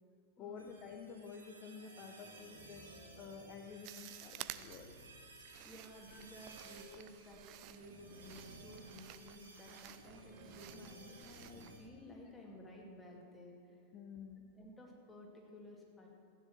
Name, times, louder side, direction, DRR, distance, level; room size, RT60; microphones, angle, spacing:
voice 1, 0.4-4.9 6.1-6.2 12.2-12.3 13.9-14.4, left 6 dB, 35° left, 4 dB, 0.8 m, -51 dB
sound 1, 0.6-11.8, right 2 dB, 70° right, 2.3 m, -57 dB
sound 2, 3.8-11.9, right 15 dB, 40° right, 0.5 m, -53 dB
voice 2, 5.6-13.8 14.6-16.1, left 1 dB, 15° left, -2 dB, 2.8 m, -55 dB
14.5 x 9.9 x 6.5 m, 2.7 s
figure-of-eight pair, 90°, 0 cm